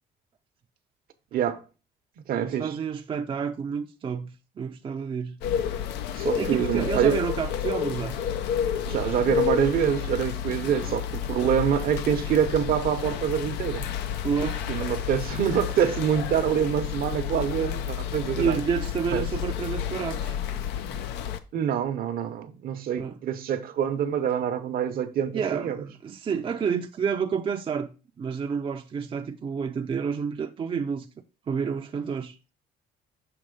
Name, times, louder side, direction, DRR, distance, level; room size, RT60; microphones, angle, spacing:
voice 1, 1.3-1.6 2.3-2.8 6.1-7.2 8.9-13.9 14.7-18.6 19.1-19.3 21.5-25.9, right 8 dB, 60° right, 0.8 m, -26 dB
voice 2, 2.4-5.4 6.3-8.2 10.8-11.0 14.2-14.7 18.3-20.4 23.0-23.2 25.3-27.9 28.2-31.1 31.5-32.4, right 6 dB, 30° right, 0.5 m, -29 dB
Light rain in a city backyard, 5.4-21.4, left 9 dB, 85° left, 0.6 m, -30 dB
6.6 x 3.0 x 5.1 m
cardioid pair, 110°, 17 cm